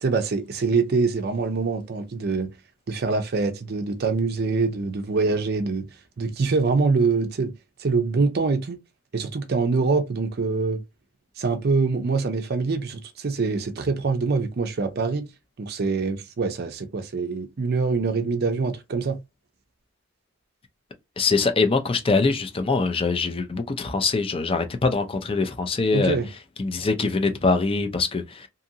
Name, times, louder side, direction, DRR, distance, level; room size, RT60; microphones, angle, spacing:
voice 1, 0.0-2.5 2.9-5.9 6.2-7.5 7.8-8.8 9.1-10.8 11.4-15.2 15.6-19.2 25.9-26.3, right 4 dB, 45° right, 0.4 m, -24 dB
voice 2, 21.2-26.2 26.6-28.5, left 4 dB, 25° left, 0.4 m, -23 dB
2.7 x 2.5 x 2.7 m
head